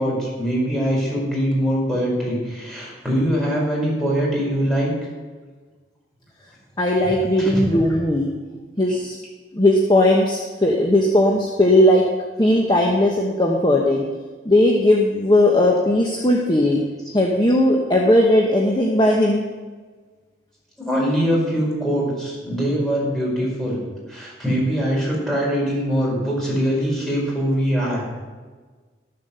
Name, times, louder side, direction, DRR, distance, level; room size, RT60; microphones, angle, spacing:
voice 1, 0.0-4.9 7.4-7.6 8.9-9.0 20.8-23.8 24.1-28.1, equal, ahead, -5 dB, 4.6 m, -22 dB
voice 2, 6.8-8.3 8.8-9.1 9.5-12.1 12.4-14.0 14.4-16.8 17.1-19.4, left 1 dB, 25° left, 0 dB, 1.1 m, -17 dB
13.5 x 7.4 x 6.8 m, 1.4 s
head